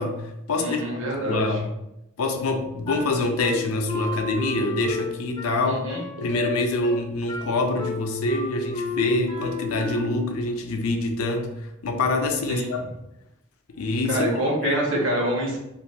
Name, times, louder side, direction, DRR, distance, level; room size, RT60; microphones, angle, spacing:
voice 1, 0.0-1.0 1.3-1.7 2.2-5.8 6.2-12.8 13.7-14.3 14.6-15.1, left 2 dB, 85° left, 4 dB, 0.5 m, -26 dB
voice 2, 0.6-1.6 5.7-6.3 12.5-12.9 14.1-15.6, right 1 dB, 60° right, -2 dB, 0.8 m, -26 dB
Wind instrument woodwind instrument, 2.8-10.3, left 2 dB, 20° left, 0.3 m, -32 dB
2.5 x 2.5 x 3.2 m, 0.87 s
head